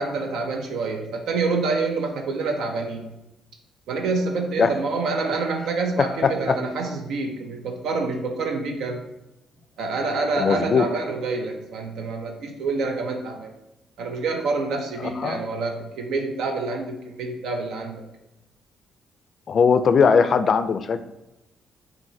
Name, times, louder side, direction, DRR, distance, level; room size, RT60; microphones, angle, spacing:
voice 1, 0.0-3.1 3.9-9.0 9.8-13.5 14.0-18.0, right 3 dB, 80° right, 3 dB, 0.5 m, -27 dB
voice 2, 6.0-6.6 10.4-10.8 15.1-15.4 19.5-21.0, left 6 dB, 50° left, 10 dB, 0.3 m, -19 dB
5.6 x 2.6 x 2.7 m, 0.95 s
cardioid pair, 90°, 0 cm